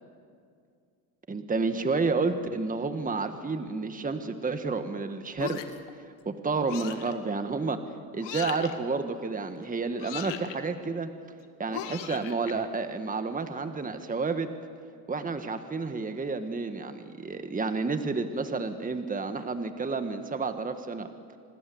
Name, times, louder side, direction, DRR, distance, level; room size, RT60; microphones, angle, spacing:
voice 1, 1.3-5.6 6.2-7.8 8.1-11.1 11.6-14.5 15.1-21.1, right 4 dB, 15° right, 8 dB, 1.6 m, -30 dB
sound 1, 5.4-5.9 6.7-7.1 8.2-8.7 10.0-10.6 11.7-12.5, left 11 dB, 60° left, 2.1 m, -37 dB
26.5 x 20.0 x 7.9 m, 2.2 s
hypercardioid pair, 80°, 50 cm